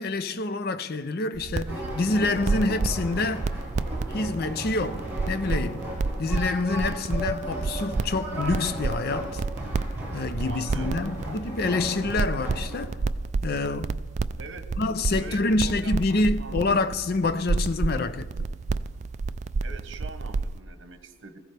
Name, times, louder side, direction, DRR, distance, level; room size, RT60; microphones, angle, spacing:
voice 1, 0.0-3.4 4.1-5.9 6.2-9.4 10.1-13.0 13.4-14.0 14.8-18.5, left 3 dB, 50° left, 0.5 m, -27 dB
sound 1, 1.3-20.6, right 3 dB, 35° right, 0.3 m, -31 dB
sound 2, 1.7-12.9, equal, 10° right, 4.4 m, -36 dB
voice 2, 10.5-11.4 14.4-14.6 15.1-16.9 19.6-21.4, right 3 dB, 70° right, 1.2 m, -43 dB
20.0 x 15.0 x 3.4 m
head